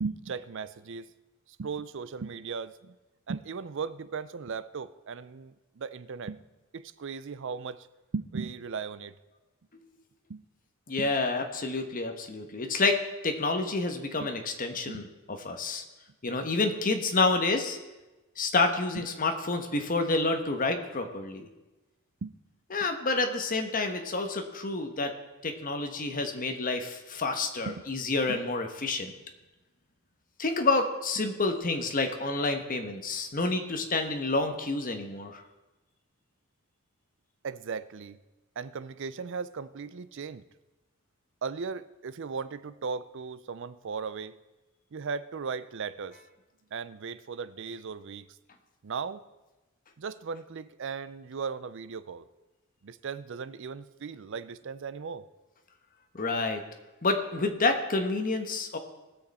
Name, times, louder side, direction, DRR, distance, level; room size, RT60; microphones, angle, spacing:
voice 1, 0.0-1.1 1.6-2.9 3.3-6.4 6.7-7.9 8.1-9.1 10.3-10.4 11.0-11.1 14.2-14.3 14.9-15.0 18.9-19.0 22.2-22.3 27.7-27.8 28.3-28.4 37.4-38.2 38.6-40.4 41.4-44.4 44.9-46.2 46.7-48.3 48.8-49.2 50.0-52.3 52.8-55.2, right 5 dB, 55° right, 15 dB, 0.5 m, -37 dB
voice 2, 10.9-13.0 13.2-15.0 15.4-15.8 16.2-17.8 18.4-21.5 22.7-25.1 25.4-29.1 30.4-35.4 56.1-56.6 57.0-58.8, left 3 dB, 40° left, 5 dB, 1.1 m, -28 dB
19.5 x 6.5 x 4.2 m, 1.1 s
head